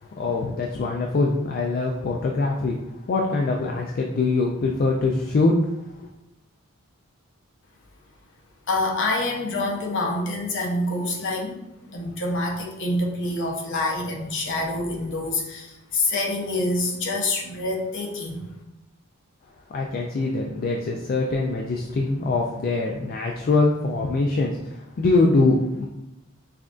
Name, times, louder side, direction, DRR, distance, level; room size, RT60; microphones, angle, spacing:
voice 1, 0.0-2.8 3.1-5.8 19.7-25.9, left 3 dB, 40° left, 0 dB, 0.3 m, -23 dB
voice 2, 8.7-11.6 11.9-18.5, left 2 dB, 55° left, 0 dB, 0.7 m, -26 dB
5.8 x 2.5 x 2.4 m, 0.90 s
head